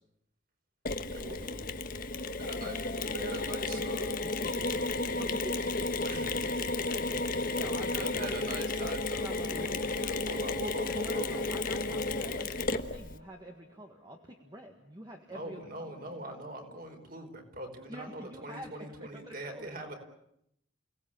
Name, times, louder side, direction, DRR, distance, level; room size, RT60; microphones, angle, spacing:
Mechanisms, 0.9-13.2, left 3 dB, 45° left, 1.3 m, -33 dB
voice 1, 1.1-1.7 2.4-4.2 6.0-6.6 7.9-12.4 15.3-19.9, right 1 dB, 45° right, 4 dB, 4.9 m, -42 dB
sound 1, 2.1-17.1, left 2 dB, 60° left, 2.1 m, -53 dB
voice 2, 4.2-5.9 6.9-8.6 9.2-10.3 11.0-16.0 17.9-19.8, right 1 dB, 20° right, 3 dB, 1.8 m, -47 dB
30.0 x 19.0 x 9.0 m, 0.78 s
head